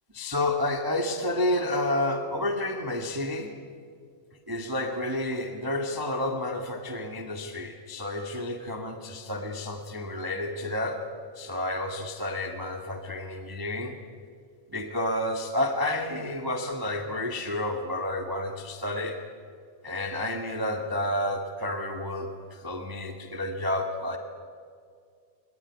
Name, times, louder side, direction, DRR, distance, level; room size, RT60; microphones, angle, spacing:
voice 1, 0.1-3.5 4.5-11.0 11.3-14.0 14.7-19.2 19.8-24.2, left 1 dB, 30° right, 5 dB, 0.4 m, -30 dB
23.5 x 18.5 x 9.8 m, 2.2 s
omnidirectional pair, 4.0 m